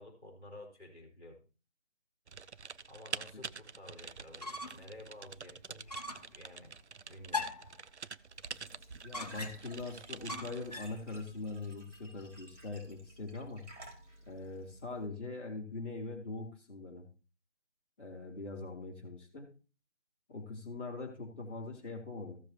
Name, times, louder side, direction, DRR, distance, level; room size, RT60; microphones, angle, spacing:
voice 1, 0.0-1.4 2.9-6.7 7.1-7.5, left 1 dB, 5° right, -11 dB, 3.2 m, -52 dB
Typing, 2.3-10.9, right 5 dB, 70° right, 0.6 m, -47 dB
sound 1, 4.2-4.9 5.3-5.4 5.9-6.3 7.3-7.8 9.1-9.8 10.3-11.0, left 3 dB, 35° left, 0.9 m, -40 dB
Glass / Trickle dribble / Fill (with liquid), 8.3-15.1, right 1 dB, 85° right, 4.3 m, -55 dB
voice 2, 9.0-13.6 14.3-17.0 18.0-19.5 20.3-22.4, left 3 dB, 10° left, -7 dB, 1.5 m, -42 dB
15.0 x 7.2 x 2.9 m, 0.34 s
figure-of-eight pair, 170°, 35 cm